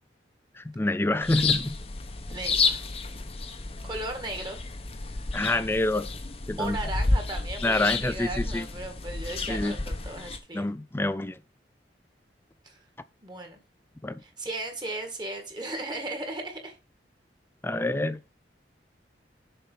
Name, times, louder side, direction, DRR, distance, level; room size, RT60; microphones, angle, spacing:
voice 1, 0.6-1.8 5.3-6.1 6.5-6.8 7.6-8.7 9.5-9.8 10.5-11.4 14.0-14.2 17.6-18.2, left 2 dB, 15° left, 0.4 m, -27 dB
sound 1, 1.2-10.4, left 3 dB, 35° left, 0.9 m, -31 dB
voice 2, 2.3-2.8 3.8-4.6 6.6-10.7 12.6-12.8 13.2-13.6 14.2-16.8, right 2 dB, 25° right, 1.7 m, -36 dB
6.9 x 4.5 x 5.6 m
head